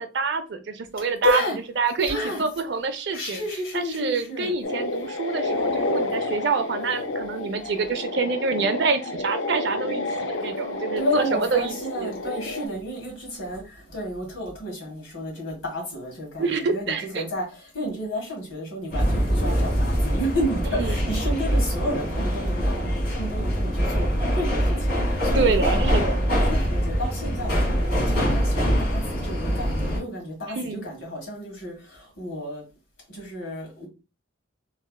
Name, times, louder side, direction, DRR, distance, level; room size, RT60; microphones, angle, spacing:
voice 1, 0.0-1.4 1.8-3.4 3.7-12.3 16.4-17.2 20.8-21.0 25.3-26.2 30.5-30.9, right 4 dB, 60° right, 0.5 m, -27 dB
voice 2, 1.0-1.6 2.1-2.4 3.1-4.5 11.0-25.0 25.2-26.1 26.5-32.6 33.1-33.9, equal, 90° left, 1.7 m, -31 dB
sound 1, 4.6-12.7, left 2 dB, 70° left, 0.5 m, -30 dB
sound 2, 18.9-30.0, equal, 55° left, 1.4 m, -23 dB
3.2 x 2.7 x 2.3 m
head